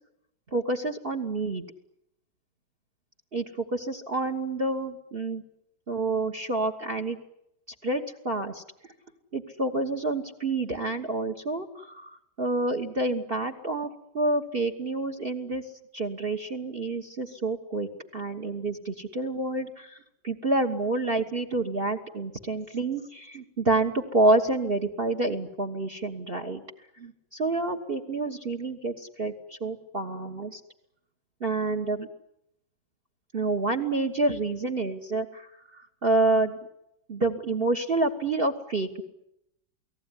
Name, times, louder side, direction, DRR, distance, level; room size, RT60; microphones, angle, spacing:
voice 1, 0.5-1.6 3.3-3.4 3.7-5.4 5.9-7.2 7.8-8.6 9.3-15.6 15.9-20.0 20.2-26.6 27.0-30.6 31.4-32.1 33.3-35.5 36.0-36.6 37.1-39.0, right 2 dB, 30° right, 8 dB, 1.4 m, -28 dB
29.0 x 18.5 x 9.9 m, 0.82 s
omnidirectional pair, 2.1 m